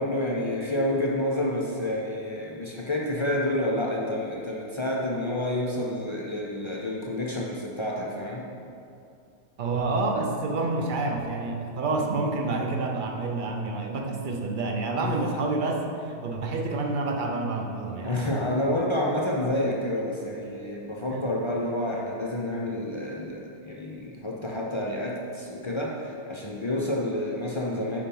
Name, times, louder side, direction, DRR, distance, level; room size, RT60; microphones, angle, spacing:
voice 1, 0.0-8.4 15.0-15.1 18.0-28.0, left 1 dB, 40° left, -2 dB, 0.4 m, -29 dB
voice 2, 9.6-18.3 21.1-21.3, right 3 dB, 55° right, 2 dB, 0.7 m, -28 dB
5.0 x 4.3 x 5.3 m, 2.5 s
omnidirectional pair, 1.1 m